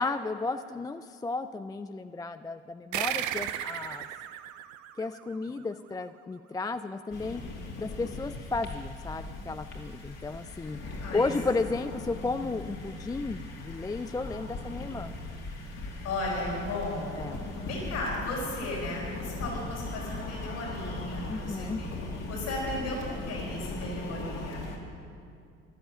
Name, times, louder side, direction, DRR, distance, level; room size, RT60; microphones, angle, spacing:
voice 1, 0.0-4.1 5.0-7.4 7.8-10.8 11.1-15.1 17.2-17.4 21.3-21.8, left 3 dB, 15° left, 10 dB, 0.4 m, -33 dB
sound 1, 2.9-5.9, right 12 dB, 75° right, 0.7 m, -35 dB
sound 2, 7.1-24.8, left 2 dB, 60° left, 2.9 m, -39 dB
voice 2, 11.0-11.6 16.0-17.1 17.6-21.9 22.3-24.7, left 1 dB, 80° left, -7 dB, 4.9 m, -35 dB
15.5 x 10.0 x 7.3 m, 2.4 s
supercardioid pair, 80°, 30 cm